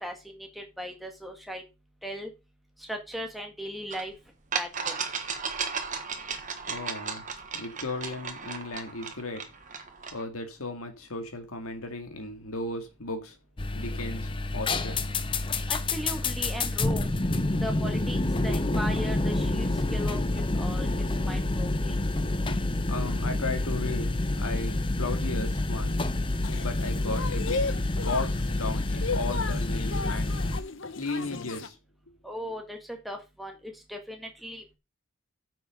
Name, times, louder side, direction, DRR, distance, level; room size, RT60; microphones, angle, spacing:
voice 1, 0.0-1.6 2.0-2.3 2.9-4.1 4.5-5.0 15.7-17.1 17.6-18.2 18.4-22.0 32.2-34.8, equal, ahead, 1.7 m, -38 dB
sound 1, 3.9-4.0 4.5-10.2, right 6 dB, 35° right, 1.3 m, -35 dB
voice 2, 6.7-7.2 7.5-9.5 10.1-13.4 13.7-15.1 22.4-26.1 26.6-27.6 28.0-30.4 31.0-31.8, left 2 dB, 80° left, 2.1 m, -36 dB
sound 2, 13.6-30.6, left 2 dB, 25° left, 0.6 m, -28 dB
sound 3, 26.4-31.7, left 4 dB, 60° left, 0.9 m, -35 dB
9.4 x 6.0 x 5.2 m
head